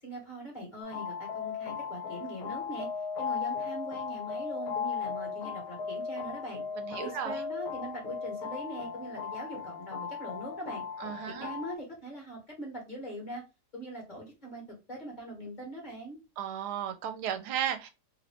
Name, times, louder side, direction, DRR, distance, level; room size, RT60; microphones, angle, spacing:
voice 1, 0.0-2.9 3.2-6.6 6.9-10.8 11.3-13.4 13.7-16.2, right 1 dB, 30° left, 1.4 m, -42 dB
sound 1, 0.8-11.8, left 6 dB, 75° left, 0.5 m, -37 dB
voice 2, 6.8-7.4 11.0-11.5 16.4-17.9, right 9 dB, 85° right, 1.1 m, -34 dB
3.0 x 2.5 x 3.3 m
omnidirectional pair, 1.7 m